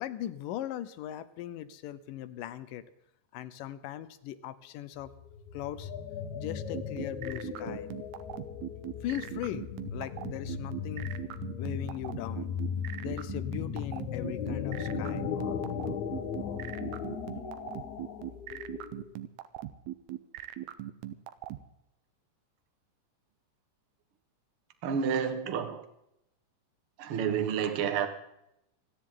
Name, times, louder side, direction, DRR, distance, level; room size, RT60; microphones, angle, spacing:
voice 1, 0.0-2.9 3.3-5.1 5.5-5.9 6.3-7.9 9.0-11.1 11.6-12.5 13.0-15.2 18.1-18.2, left 12 dB, 80° left, 14 dB, 2.5 m, -39 dB
sound 1, 5.0-19.1, left 7 dB, 65° left, 2.6 m, -37 dB
sound 2, 6.7-21.6, right 14 dB, 75° right, 1.8 m, -39 dB
voice 2, 24.8-25.9 27.0-28.1, right 7 dB, 55° right, 8 dB, 1.7 m, -29 dB
28.5 x 10.5 x 3.8 m, 0.82 s
omnidirectional pair, 3.9 m